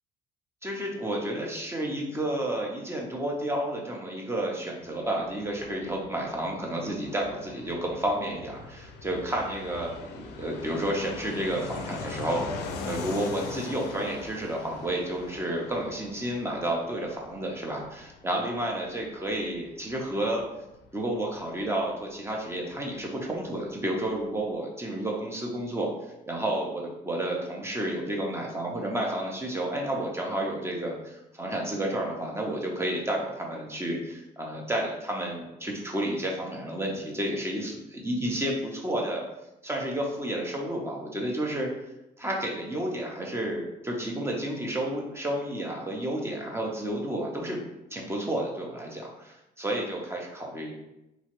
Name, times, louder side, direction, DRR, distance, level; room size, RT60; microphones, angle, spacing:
voice 1, 0.6-20.4 20.9-25.9 26.3-39.2 39.6-41.7 42.2-47.6 47.9-50.7, right 1 dB, 15° right, -1 dB, 0.6 m, -31 dB
Fixed-wing aircraft airplane, 4.8-23.2 23.5-23.6 23.7-24.5, left 4 dB, 85° left, 0.4 m, -42 dB
3.0 x 2.3 x 2.9 m, 0.91 s
cardioid pair, 110°, 17 cm